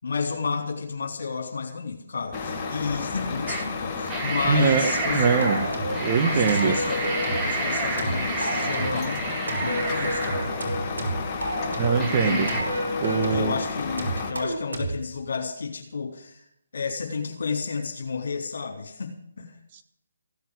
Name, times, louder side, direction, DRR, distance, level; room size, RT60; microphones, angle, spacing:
voice 1, 0.0-5.2 6.2-7.1 7.4-10.5 12.0-12.6 13.0-16.4 16.7-19.5, left 5 dB, 60° left, 3 dB, 4.0 m, -31 dB
Truck, 2.3-14.3, left 4 dB, 25° left, 2.3 m, -32 dB
sound 1, 3.5-3.6 4.0-10.8 11.3-11.4 11.9-12.6, right 3 dB, 15° right, 2.4 m, -30 dB
voice 2, 4.4-5.7 6.0-6.8 11.7-12.7 13.0-13.6, right 5 dB, 30° right, 7 dB, 1.8 m, -23 dB
sound 2, 5.4-6.1 6.5-7.5 8.0-9.1 9.5-12.1 12.5-13.5 14.0-15.0, right 1 dB, 75° right, 5.1 m, -30 dB
16.5 x 8.1 x 8.1 m, 0.72 s
figure-of-eight pair, 140°, 0 cm